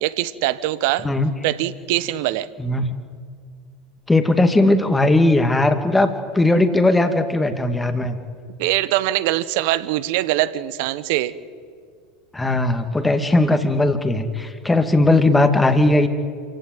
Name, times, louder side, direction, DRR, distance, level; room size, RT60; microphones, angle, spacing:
voice 1, 0.0-1.1 1.4-2.5 8.6-11.3, right 15 dB, 65° right, 16 dB, 1.1 m, -22 dB
voice 2, 2.6-2.9 4.1-8.1 12.3-16.1, left 2 dB, 10° left, 7 dB, 2.3 m, -18 dB
27.5 x 16.0 x 9.3 m, 2.1 s
hypercardioid pair, 80°, 0 cm